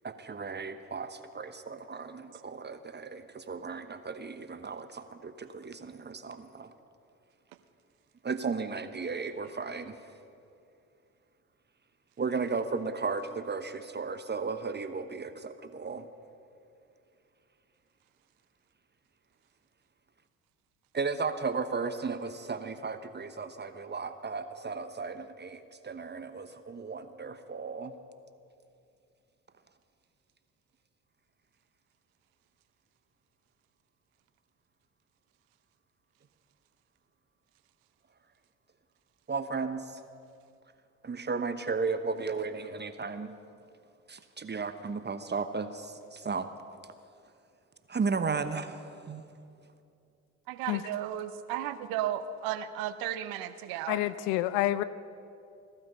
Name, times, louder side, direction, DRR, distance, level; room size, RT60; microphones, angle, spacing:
voice 1, 0.0-6.7 8.2-10.0 12.2-16.1 20.9-27.9 39.3-40.0 41.0-43.3 44.1-46.5 47.9-49.2, right 4 dB, 30° right, 10 dB, 0.9 m, -35 dB
voice 2, 50.5-54.0, right 11 dB, 75° right, 12 dB, 0.8 m, -34 dB
voice 3, 53.9-54.8, left 15 dB, 75° left, 16 dB, 0.5 m, -28 dB
17.0 x 12.5 x 5.5 m, 2.5 s
hypercardioid pair, 50°, 36 cm